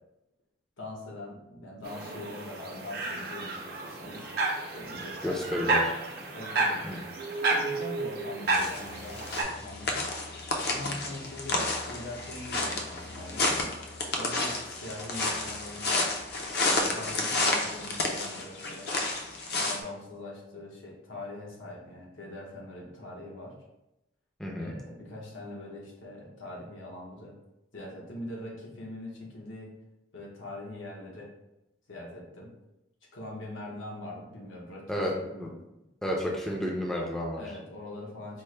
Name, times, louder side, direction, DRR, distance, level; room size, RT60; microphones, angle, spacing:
voice 1, 0.8-4.3 4.7-5.8 6.3-6.8 7.4-10.0 10.6-11.6 11.9-13.5 14.1-15.9 16.6-18.9 19.6-23.5 24.6-27.3 27.7-29.7 30.1-31.3 31.9-32.5 33.1-35.5 37.4-38.4, left 1 dB, 90° left, -2 dB, 1.0 m, -42 dB
sound 1, 1.8-9.4, right 3 dB, 50° right, 0.6 m, -31 dB
voice 2, 5.2-5.9 6.8-7.0 24.4-24.8 34.9-35.1 35.4-35.5 36.0-37.4, equal, 5° left, -2 dB, 0.4 m, -31 dB
sound 2, 8.5-19.8, left 2 dB, 55° left, 0.5 m, -31 dB
4.3 x 2.1 x 3.2 m, 0.91 s
head